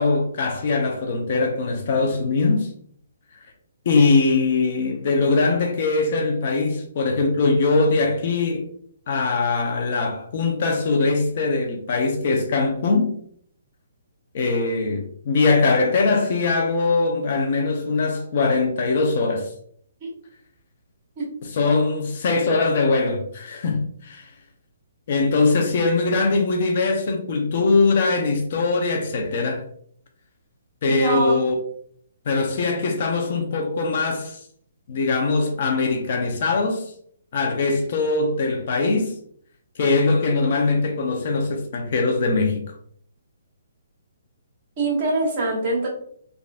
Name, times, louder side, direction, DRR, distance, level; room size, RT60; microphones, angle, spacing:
voice 1, 0.0-2.7 3.9-8.7 9.1-13.2 14.3-19.5 21.5-24.3 25.1-29.6 30.8-31.6 32.3-34.4 34.9-36.9 37.3-39.2 39.8-42.6, left 3 dB, 50° left, 0.6 m, -21 dB
voice 2, 30.8-31.4 44.8-45.9, right 2 dB, 35° right, 1.4 m, -24 dB
3.4 x 2.5 x 2.4 m
hypercardioid pair, 150°, 0 cm